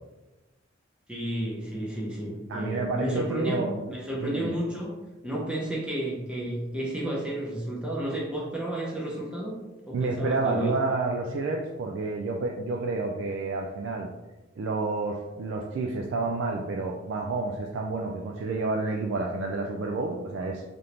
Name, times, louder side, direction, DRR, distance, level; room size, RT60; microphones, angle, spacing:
voice 1, 1.1-4.9 5.2-9.6 9.9-10.8, right 1 dB, 5° right, -4 dB, 0.5 m, -31 dB
voice 2, 2.5-3.8 4.2-4.5 9.9-14.1 14.6-20.6, right 3 dB, 65° right, 1 dB, 0.3 m, -30 dB
3.4 x 2.5 x 2.8 m, 1.1 s
head